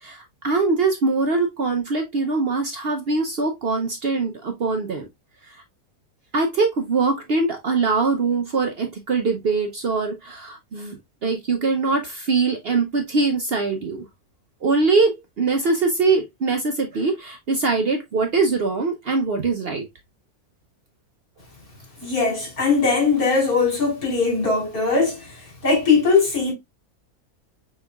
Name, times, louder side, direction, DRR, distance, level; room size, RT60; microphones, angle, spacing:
voice 1, 0.0-5.1 5.5-5.6 6.3-14.0 14.6-19.9, right 3 dB, 55° right, 0.7 m, -22 dB
voice 2, 22.0-25.2 25.6-26.5, left 4 dB, 75° left, 4.0 m, -20 dB
6.3 x 3.2 x 2.2 m
omnidirectional pair, 1.6 m